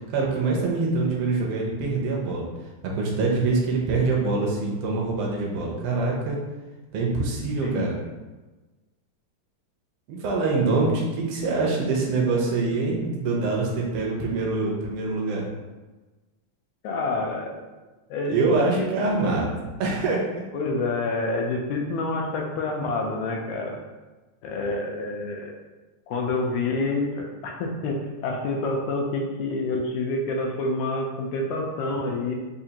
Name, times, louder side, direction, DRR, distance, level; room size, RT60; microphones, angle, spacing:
voice 1, 0.1-2.5 2.9-6.4 6.9-7.9 10.1-15.4 18.3-19.5 19.8-20.4, right 3 dB, 75° right, -1 dB, 1.4 m, -24 dB
voice 2, 16.8-17.6 18.1-19.4 20.5-23.8 24.4-25.5 26.1-32.4, left 2 dB, 80° left, 1 dB, 1.8 m, -28 dB
5.0 x 2.4 x 2.8 m, 1.2 s
omnidirectional pair, 3.3 m